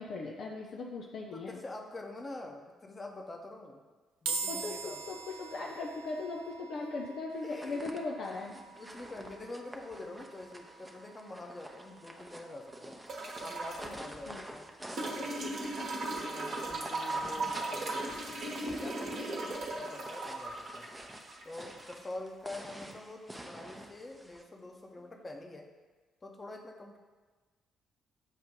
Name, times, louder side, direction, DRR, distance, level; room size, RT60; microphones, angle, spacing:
voice 1, 0.0-1.6 4.5-8.6 14.3-14.4 17.4-17.5, left 3 dB, 55° left, -1 dB, 0.5 m, -39 dB
voice 2, 1.3-3.8 4.2-5.2 6.8-6.9 7.4-8.2 8.5-13.0 13.4-14.7 15.0-15.3 16.2-20.9 21.4-25.7 26.2-27.0, left 2 dB, 30° left, 1 dB, 0.9 m, -46 dB
sound 1, 4.3-17.6, right 4 dB, 70° right, 0.3 m, -46 dB
sound 2, 7.4-24.4, right 1 dB, 10° right, 0.7 m, -49 dB
sound 3, 13.1-13.9 15.0-22.0 23.3-23.4, right 2 dB, 50° right, 1.0 m, -37 dB
7.3 x 2.6 x 5.2 m, 1.3 s
figure-of-eight pair, 45°, 0 cm